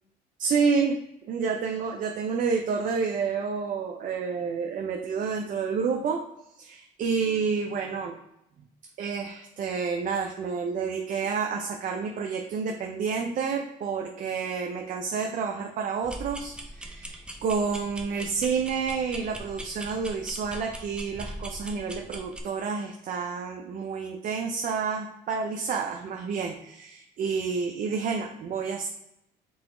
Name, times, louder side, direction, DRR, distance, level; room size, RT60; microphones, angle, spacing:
voice 1, 0.4-1.0 1.3-6.2 6.6-8.2 9.0-28.9, right 5 dB, 50° right, 2 dB, 0.5 m, -29 dB
sound 1, 16.0-22.4, right 1 dB, 5° right, 0.5 m, -41 dB
3.9 x 2.8 x 3.7 m, 0.82 s
cardioid pair, 110°, 17 cm